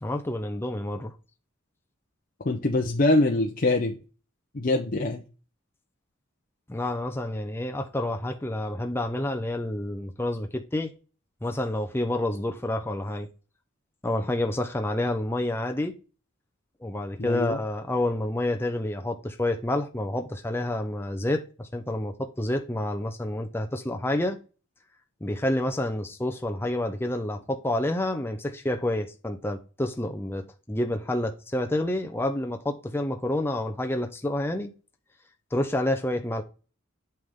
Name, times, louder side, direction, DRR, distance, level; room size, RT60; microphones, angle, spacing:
voice 1, 0.0-1.1 6.7-10.9 11.4-13.3 14.0-15.9 16.8-24.4 25.2-34.7 35.5-36.4, left 1 dB, 10° left, 0.7 m, -29 dB
voice 2, 2.4-3.9 4.5-5.2 17.2-17.6, left 2 dB, 45° left, 0.8 m, -24 dB
8.3 x 5.8 x 3.7 m
head